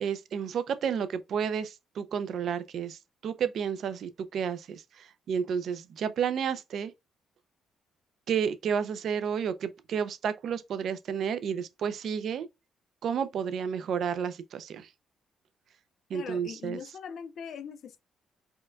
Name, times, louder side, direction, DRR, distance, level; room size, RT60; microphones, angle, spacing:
voice 1, 0.0-6.9 8.3-12.5 13.0-14.9 16.1-16.8, right 7 dB, 55° right, 0.4 m, -31 dB
voice 2, 16.1-18.0, left 7 dB, 50° left, 0.3 m, -41 dB
4.3 x 2.2 x 2.3 m
cardioid pair, 165°, 0 cm